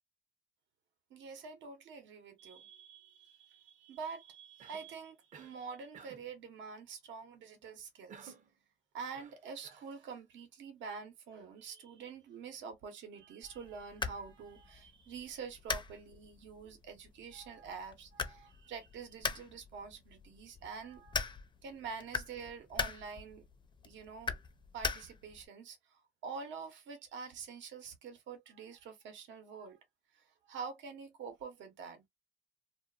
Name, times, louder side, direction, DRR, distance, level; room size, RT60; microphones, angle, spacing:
voice 1, 1.1-8.3 8.9-21.2 21.6-23.4 23.8-24.3 24.7-29.8 30.1-32.1, right 5 dB, 70° right, 1.0 m, -46 dB
Cough, 4.6-4.9 5.3-5.6 5.9-6.3 8.1-8.5 9.1-9.9, right 6 dB, 40° right, 0.7 m, -55 dB
sound 1, 13.4-25.5, left 5 dB, 25° left, 0.5 m, -42 dB
2.5 x 2.3 x 2.4 m
supercardioid pair, 80°, 20 cm